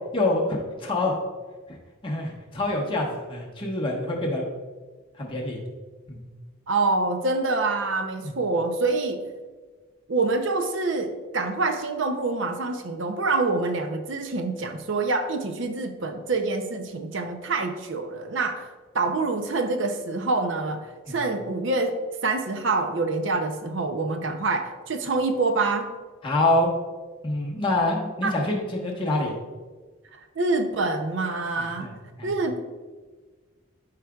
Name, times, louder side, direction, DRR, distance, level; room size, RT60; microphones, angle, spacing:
voice 1, 0.1-1.2 2.0-4.4 5.2-5.6 6.1-6.2 21.1-21.2 26.2-26.7 27.2-29.3 31.6-31.9 32.2-32.3, left 2 dB, 25° left, -2 dB, 1.2 m, -26 dB
voice 2, 6.7-9.2 10.1-18.7 18.9-25.9 28.2-28.3 30.4-31.9 32.2-32.6, right 3 dB, 65° right, 7 dB, 0.6 m, -26 dB
12.0 x 4.9 x 2.3 m, 1.3 s
head